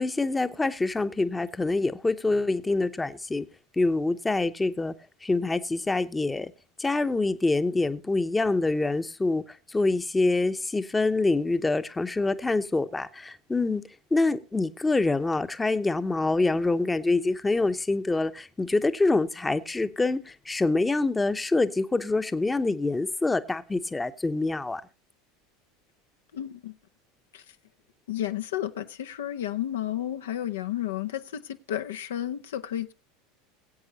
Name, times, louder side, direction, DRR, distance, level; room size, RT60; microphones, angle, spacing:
voice 1, 0.0-3.4 3.8-4.9 5.2-6.5 6.8-9.4 9.7-13.8 14.1-20.2 20.5-24.8, left 3 dB, 15° left, 0.8 m, -25 dB
voice 2, 26.3-26.7 27.3-27.6 28.1-32.9, left 12 dB, 80° left, 0.6 m, -32 dB
21.5 x 8.0 x 2.8 m
hypercardioid pair, 85°, 0 cm